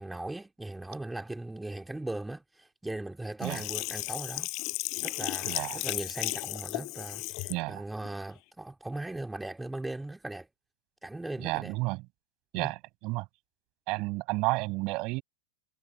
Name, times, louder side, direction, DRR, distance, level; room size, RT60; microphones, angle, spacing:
voice 1, 0.0-4.5 5.0-10.5 11.0-11.7 12.5-12.7, right 2 dB, 5° right, 2.8 m, -39 dB
Sink (filling or washing), 3.4-7.6 8.1-8.2, left 27 dB, 45° left, 5.0 m, -34 dB
voice 2, 5.4-5.8 7.5-7.8 11.4-12.0 12.5-12.8 13.0-13.2 13.9-15.2, right 24 dB, 45° right, 6.1 m, -31 dB
hypercardioid pair, 120°, 0 cm